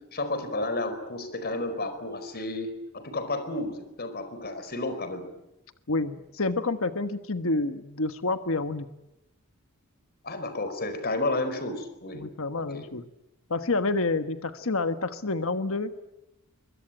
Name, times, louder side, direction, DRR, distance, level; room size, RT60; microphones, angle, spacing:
voice 1, 0.1-5.3 10.2-12.2 12.6-12.9, left 2 dB, 45° left, 10 dB, 4.7 m, -32 dB
voice 2, 5.9-8.9 12.1-13.0 13.5-15.9, left 3 dB, 65° left, 10 dB, 1.3 m, -28 dB
25.0 x 23.5 x 9.2 m, 0.92 s
head